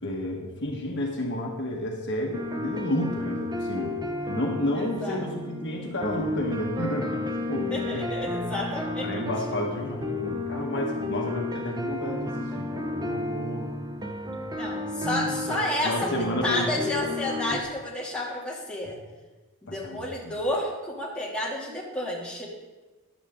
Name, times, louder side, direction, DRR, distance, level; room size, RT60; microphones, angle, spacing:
voice 1, 0.0-3.9 4.3-8.1 9.0-13.7 15.0-15.6 15.8-16.9 19.7-20.4, left 1 dB, 55° left, 0 dB, 1.6 m, -31 dB
sound 1, 2.3-17.6, left 2 dB, 20° right, 0.9 m, -32 dB
voice 2, 4.8-5.2 7.7-9.1 14.5-16.1 16.4-19.0 19.6-22.5, left 1 dB, 5° left, -5 dB, 2.8 m, -31 dB
15.0 x 11.0 x 3.8 m, 1.2 s
head